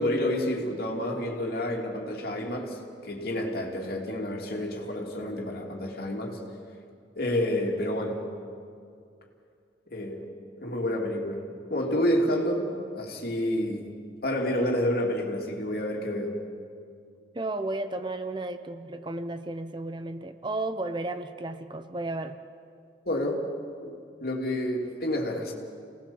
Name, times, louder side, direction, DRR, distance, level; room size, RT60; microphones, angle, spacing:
voice 1, 0.0-6.4 7.2-8.2 9.9-10.3 10.6-13.9 14.2-16.4 23.0-23.4 23.8-23.9 24.2-25.5, left 1 dB, 55° left, 1 dB, 3.0 m, -29 dB
voice 2, 17.3-22.4, right 2 dB, 25° right, 9 dB, 0.7 m, -33 dB
28.5 x 18.5 x 7.2 m, 2.4 s
head